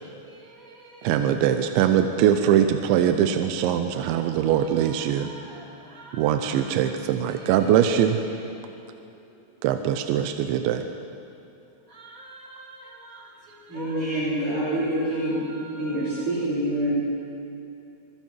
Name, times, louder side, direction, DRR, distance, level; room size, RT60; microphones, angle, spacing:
voice 1, 0.0-1.5 4.4-6.7 7.1-7.9 8.4-9.6 11.9-16.3, right 2 dB, 25° right, 2.2 m, -47 dB
voice 2, 1.0-5.3 6.1-8.2 9.6-10.9, right 9 dB, 80° right, 3.0 m, -22 dB
voice 3, 13.7-17.0, right 1 dB, 40° right, 5.7 m, -26 dB
27.5 x 21.5 x 4.6 m
omnidirectional pair, 5.5 m